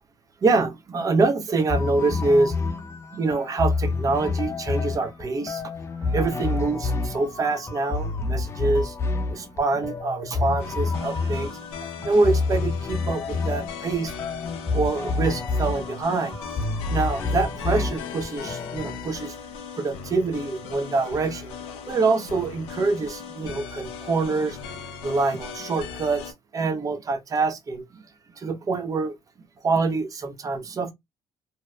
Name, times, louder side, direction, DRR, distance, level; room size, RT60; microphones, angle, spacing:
voice 1, 0.4-2.5 3.1-5.6 6.0-9.0 9.3-14.1 14.7-16.5 16.9-19.3 19.8-21.5 21.9-24.6 25.0-28.0 28.4-29.1 29.6-30.9, right 3 dB, 35° right, 0.6 m, -25 dB
sound 1, 1.7-19.0, left 3 dB, 25° left, 0.5 m, -28 dB
sound 2, 10.6-26.3, left 6 dB, 85° left, 0.6 m, -38 dB
2.7 x 2.1 x 2.2 m
supercardioid pair, 75°, 10 cm